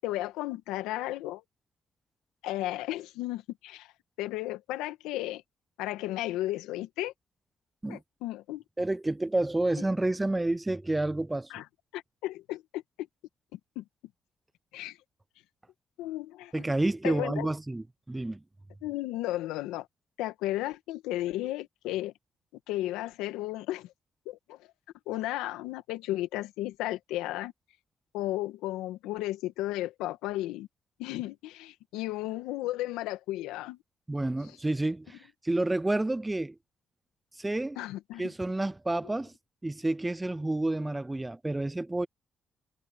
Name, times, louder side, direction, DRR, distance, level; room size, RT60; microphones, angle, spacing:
voice 1, 0.0-1.4 2.4-3.9 4.2-5.4 5.8-7.1 7.9-8.6 11.5-11.6 11.9-12.8 13.5-13.8 14.7-15.0 16.0-16.6 17.0-17.5 18.8-19.9 20.2-22.1 22.7-23.9 24.3-24.6 25.1-27.5 28.1-30.7 31.0-33.8 37.8-38.2, left 16 dB, 90° left, 1.8 m, -34 dB
voice 2, 8.8-11.5 16.5-18.4 34.1-36.6 37.4-37.8 38.2-39.3 39.6-42.1, right 2 dB, 20° right, 0.5 m, -29 dB
supercardioid pair, 50°, 0 cm